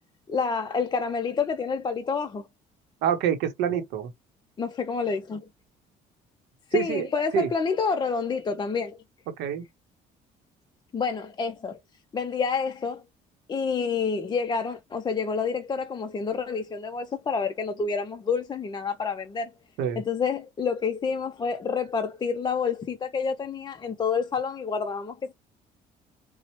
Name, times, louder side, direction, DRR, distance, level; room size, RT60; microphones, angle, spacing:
voice 1, 0.3-2.5 4.6-5.5 6.7-9.0 10.9-11.8 12.1-13.0 13.5-19.5 20.0-25.3, left 5 dB, 25° left, 0.4 m, -28 dB
voice 2, 3.0-4.1 6.7-7.1 7.3-7.5 9.4-9.6 19.8-20.0, right 9 dB, 90° right, 0.7 m, -26 dB
4.2 x 2.0 x 2.9 m
cardioid pair, 110°, 17 cm